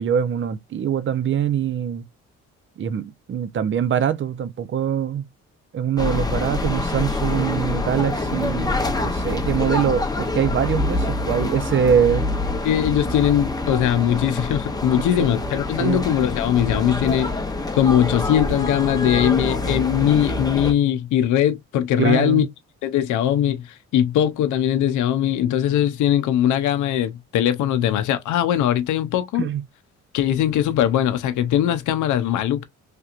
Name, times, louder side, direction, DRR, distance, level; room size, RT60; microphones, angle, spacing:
voice 1, 0.0-2.0 2.8-5.3 5.7-12.3 15.2-15.3 15.8-16.0 22.0-22.5 29.4-29.6, right 8 dB, 40° right, 0.5 m, -23 dB
sound 1, 6.0-20.7, left 2 dB, 15° left, 0.7 m, -26 dB
voice 2, 12.6-17.3 17.7-22.4 22.8-29.5 30.1-32.6, left 10 dB, 75° left, 0.5 m, -20 dB
3.3 x 2.8 x 2.4 m
cardioid pair, 90°, 30 cm